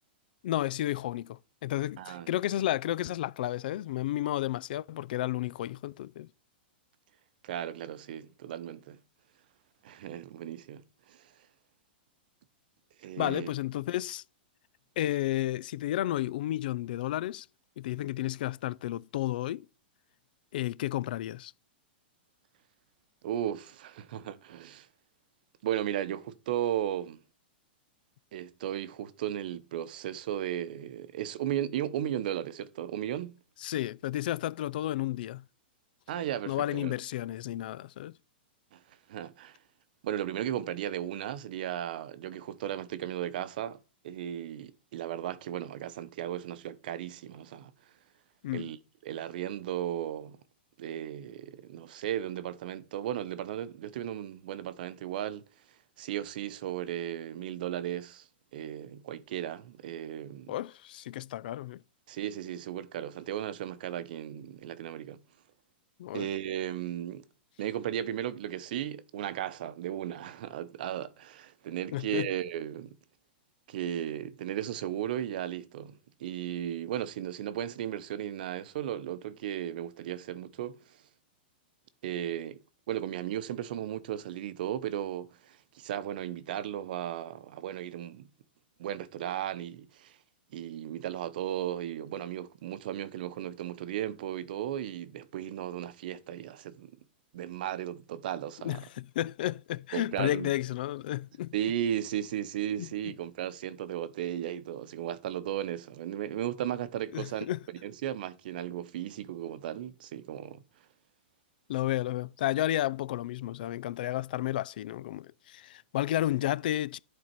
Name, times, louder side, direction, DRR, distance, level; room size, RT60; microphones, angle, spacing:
voice 1, 0.4-6.3 13.2-14.2 15.0-17.5 17.8-19.7 20.5-21.5 33.6-35.4 36.5-38.2 48.4-48.7 60.5-61.8 66.0-66.3 71.9-72.3 98.6-101.5 102.8-102.9 107.1-107.6 111.7-117.0, left 14 dB, 60° left, 0.4 m, -32 dB
voice 2, 2.0-2.3 7.4-9.0 9.8-11.3 13.0-13.5 23.2-24.9 25.6-27.2 28.3-33.3 36.1-36.9 38.7-38.8 39.1-39.6 40.0-43.8 44.0-47.7 48.5-48.8 49.0-50.4 50.8-55.4 56.0-60.6 62.1-65.2 66.1-67.3 67.6-73.0 73.7-81.0 82.0-82.6 82.9-88.3 88.8-90.2 90.5-97.0 97.3-98.8 99.9-100.5 101.5-107.5 107.8-110.6, right 11 dB, 55° right, 0.8 m, -35 dB
11.0 x 4.3 x 4.5 m
hypercardioid pair, 155°, 6 cm